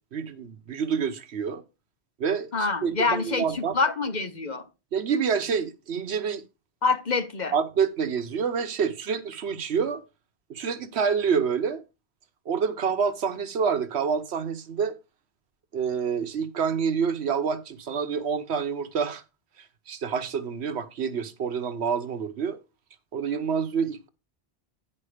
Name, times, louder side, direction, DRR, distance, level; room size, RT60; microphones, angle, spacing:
voice 1, 0.1-1.6 2.2-3.7 4.9-6.4 7.5-10.0 10.5-11.8 12.5-14.9 15.7-19.2 19.6-22.6 23.1-24.1, right 6 dB, 75° right, 1.2 m, -27 dB
voice 2, 2.5-4.6 6.8-7.5, left 4 dB, 45° left, 0.9 m, -26 dB
10.0 x 5.2 x 4.9 m
omnidirectional pair, 1.1 m